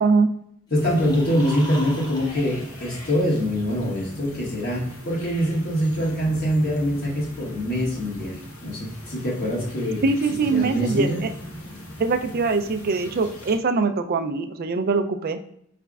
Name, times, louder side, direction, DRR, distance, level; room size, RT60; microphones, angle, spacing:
sound 1, 0.7-13.6, left 1 dB, 85° left, 1.1 m, -41 dB
voice 1, 0.7-10.0 10.5-11.2, equal, 50° left, -3 dB, 1.4 m, -24 dB
sound 2, 0.7-3.8, equal, 20° left, 0.8 m, -40 dB
voice 2, 10.0-11.3 12.0-15.4, right 4 dB, 45° right, 8 dB, 0.4 m, -22 dB
5.0 x 3.3 x 2.3 m, 0.70 s
head